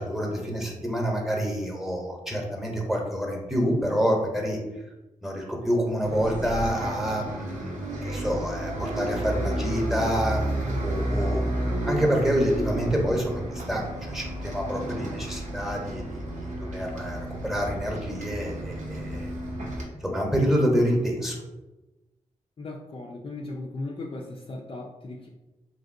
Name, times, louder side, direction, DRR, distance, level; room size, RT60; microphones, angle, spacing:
voice 1, 0.0-4.6 5.2-11.4 11.9-19.3 20.0-21.4, equal, ahead, 0 dB, 0.9 m, -27 dB
Bus, 6.0-19.8, right 1 dB, 65° right, 0.7 m, -31 dB
voice 2, 22.6-25.3, left 2 dB, 40° left, -1 dB, 0.4 m, -37 dB
3.0 x 2.6 x 2.6 m, 1.1 s
supercardioid pair, 40°, 14 cm